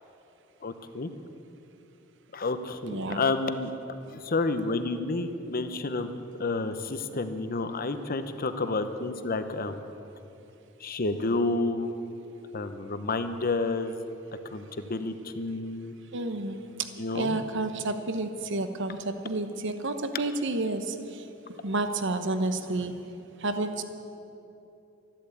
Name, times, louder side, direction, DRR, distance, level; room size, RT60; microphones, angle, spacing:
voice 1, 0.6-1.1 2.3-3.7 4.1-6.1 6.4-9.8 10.8-11.9 12.5-14.0 14.4-15.9 17.0-17.4, left 3 dB, 45° left, 10 dB, 0.9 m, -30 dB
voice 2, 2.9-3.2 16.1-16.6 17.1-21.2 21.6-23.0 23.4-23.8, right 2 dB, 65° right, 9 dB, 1.0 m, -30 dB
13.0 x 12.0 x 8.4 m, 2.9 s
head